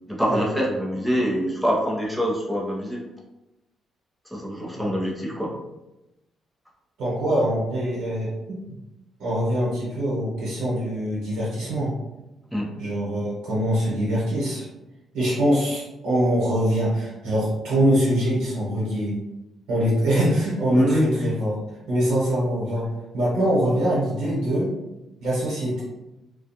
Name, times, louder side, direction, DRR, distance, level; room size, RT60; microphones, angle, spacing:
voice 1, 0.1-3.0 4.3-5.5 12.5-12.7 20.7-21.2, equal, ahead, -3 dB, 0.7 m, -24 dB
voice 2, 7.0-8.6 9.2-11.9 12.8-14.6 15.1-19.2 19.7-21.6 21.9-22.8 23.1-24.7 25.2-25.8, equal, 90° right, -7 dB, 1.0 m, -23 dB
2.3 x 2.2 x 2.8 m, 0.96 s
cardioid pair, 90°, 0 cm